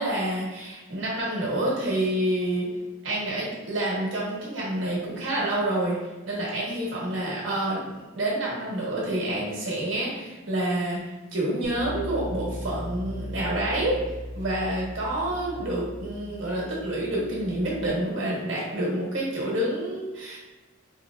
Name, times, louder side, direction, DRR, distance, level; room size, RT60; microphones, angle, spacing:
voice 1, 0.0-2.7 3.0-14.0 14.3-20.4, right 1 dB, 65° right, -5 dB, 1.3 m, -28 dB
Bass guitar, 11.6-17.9, left 1 dB, 30° right, 0.3 m, -38 dB
4.7 x 2.9 x 2.4 m, 1.1 s
head